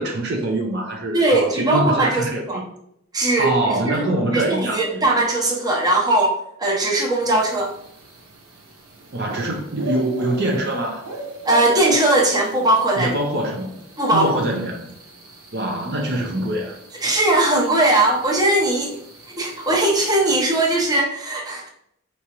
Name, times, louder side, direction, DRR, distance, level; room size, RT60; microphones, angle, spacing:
voice 1, 0.0-2.7 3.4-5.0 9.1-11.1 13.0-13.8 14.1-14.9 15.5-16.8, right 1 dB, 50° right, 1 dB, 0.6 m, -24 dB
voice 2, 1.1-2.6 3.1-3.5 3.8-4.0 4.3-7.7 11.4-13.1 14.0-14.4 17.0-19.0 19.4-21.7, right 2 dB, 15° right, -2 dB, 0.8 m, -19 dB
sound 1, 7.2-21.0, right 3 dB, 80° right, 0.9 m, -38 dB
4.7 x 2.9 x 2.9 m, 0.74 s
head